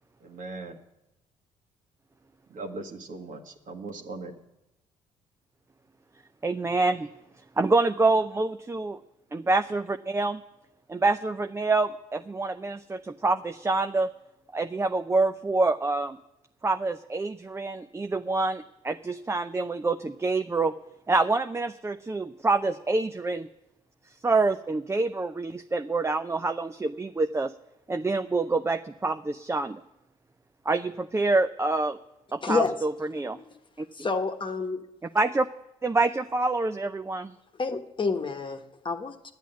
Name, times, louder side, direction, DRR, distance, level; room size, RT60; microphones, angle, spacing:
voice 1, 0.2-0.8 2.5-4.3, right 3 dB, 55° right, 4 dB, 1.8 m, -39 dB
voice 2, 6.4-7.1 7.6-9.0 9.3-10.4 10.9-14.1 14.5-16.2 16.6-20.7 21.1-23.5 24.2-27.5 27.9-29.8 30.7-32.0 32.3-33.4 33.8-33.9 35.1-35.5 35.8-37.3, right 3 dB, 15° right, 8 dB, 0.5 m, -26 dB
voice 3, 32.4-32.7 33.4-33.5 33.9-34.8 37.6-39.3, left 4 dB, 30° left, 5 dB, 1.3 m, -29 dB
10.5 x 8.3 x 9.2 m, 0.90 s
hypercardioid pair, 55°, 16 cm